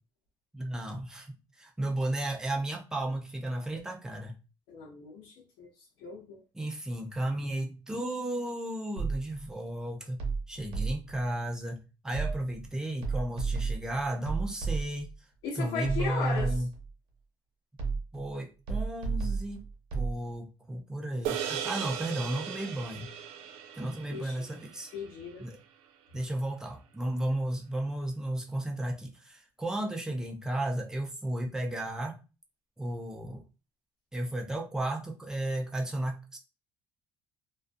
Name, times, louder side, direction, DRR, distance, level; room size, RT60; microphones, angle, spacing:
voice 1, 0.5-4.3 6.5-10.2 10.5-15.1 15.6-16.7 18.1-19.6 19.9-23.1 23.8-24.9 25.4-25.6 26.1-32.2 32.8-33.4 34.1-36.4, right 1 dB, 5° right, 0.4 m, -34 dB
voice 2, 4.7-5.7 6.0-6.4 15.4-16.6 24.1-24.4 24.9-25.5, left 5 dB, 65° left, 0.7 m, -37 dB
sound 1, 9.0-9.5 10.2-11.2 12.1-12.7 13.0-15.1 15.8-16.9 17.8-18.3 18.7-20.2, right 4 dB, 60° right, 0.8 m, -33 dB
sound 2, 21.2-25.8, right 9 dB, 85° right, 0.4 m, -38 dB
2.4 x 2.2 x 2.5 m
cardioid pair, 175°, 10 cm